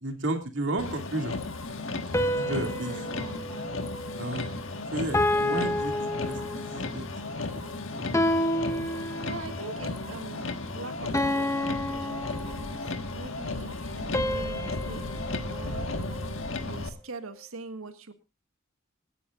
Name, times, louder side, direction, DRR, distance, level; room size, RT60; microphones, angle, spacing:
voice 1, 0.0-1.4 2.1-2.9 4.2-4.6 4.9-6.7 6.9-7.2 7.9-8.0, right 2 dB, 60° right, 4 dB, 2.4 m, -33 dB
Motor vehicle (road), 0.8-16.9, left 2 dB, 65° left, 1.6 m, -35 dB
sound 1, 2.1-4.6 5.1-6.9 8.1-9.7 11.1-13.0 14.1-16.5, left 1 dB, 15° left, 0.8 m, -30 dB
voice 2, 2.4-3.7 9.2-15.1 15.3-15.9 16.6-18.1, right 3 dB, 80° right, 8 dB, 1.7 m, -42 dB
26.5 x 10.0 x 2.5 m, 0.29 s
head